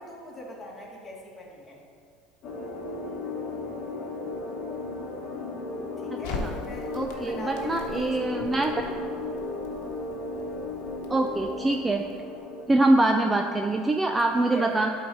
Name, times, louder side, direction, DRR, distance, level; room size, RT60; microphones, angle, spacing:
voice 1, 0.0-1.8 6.0-8.5 14.3-14.9, left 1 dB, 20° left, -2 dB, 1.5 m, -41 dB
sound 1, 2.4-12.6, left 3 dB, 40° left, 1.1 m, -35 dB
voice 2, 6.1-6.5 6.9-8.7 11.1-12.0 12.7-14.9, right 2 dB, 10° right, 4 dB, 0.3 m, -24 dB
Crackle, 6.2-12.4, left 3 dB, 70° left, 1.0 m, -42 dB
11.0 x 4.0 x 4.6 m, 2.3 s
cardioid pair, 150°, 0 cm